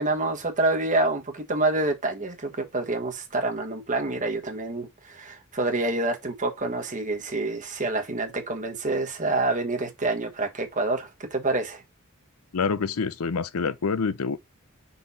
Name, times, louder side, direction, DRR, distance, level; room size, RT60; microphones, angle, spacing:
voice 1, 0.0-11.8, right 2 dB, 35° right, 1.3 m, -27 dB
voice 2, 12.5-14.4, left 5 dB, 80° left, 0.6 m, -26 dB
5.7 x 4.2 x 4.1 m
head